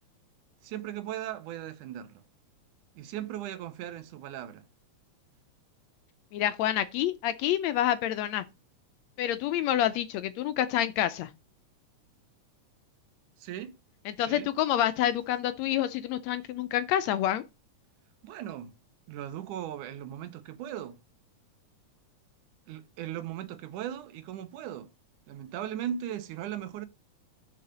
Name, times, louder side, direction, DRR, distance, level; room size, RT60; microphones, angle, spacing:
voice 1, 0.6-2.2 3.0-4.6 13.4-13.7 14.3-14.5 18.2-18.7 19.1-21.0 22.7-24.9 25.3-26.9, right 11 dB, 90° right, 2.4 m, -38 dB
voice 2, 6.3-8.4 9.2-11.3 14.1-17.4, left 12 dB, 75° left, 1.7 m, -28 dB
6.8 x 5.6 x 5.2 m
omnidirectional pair, 3.5 m